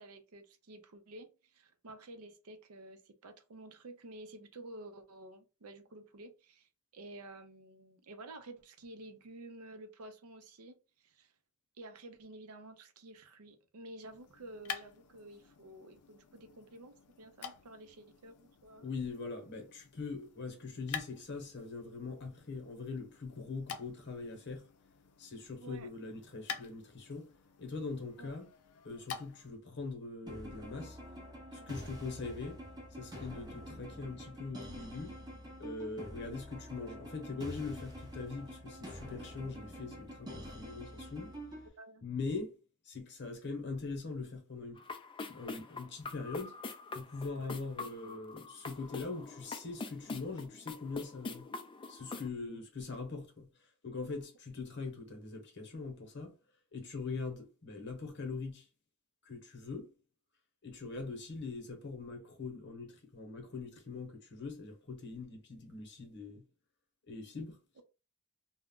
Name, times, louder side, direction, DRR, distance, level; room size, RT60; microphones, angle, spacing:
voice 1, 0.0-10.8 11.0-11.3 11.8-19.0 25.6-25.9 28.2-28.4 31.6-31.9 41.8-42.0 47.3-47.5 52.4-52.6, right 2 dB, 85° right, 0.6 m, -51 dB
sound 1, 14.0-29.6, left 7 dB, 85° left, 0.5 m, -49 dB
voice 2, 18.8-24.7 25.2-27.3 27.6-28.5 28.8-31.0 31.5-32.6 32.9-35.1 35.6-41.3 42.0-42.6 42.9-44.8 45.3-46.5 46.9-51.5 51.9-53.5 53.8-56.3 56.7-58.7 59.3-59.9 60.6-66.4 67.1-67.6, left 4 dB, 50° left, 0.9 m, -42 dB
sound 2, 30.3-41.7, equal, 20° right, 0.6 m, -47 dB
sound 3, 44.8-52.3, left 3 dB, 25° left, 0.3 m, -44 dB
2.3 x 2.1 x 3.6 m
head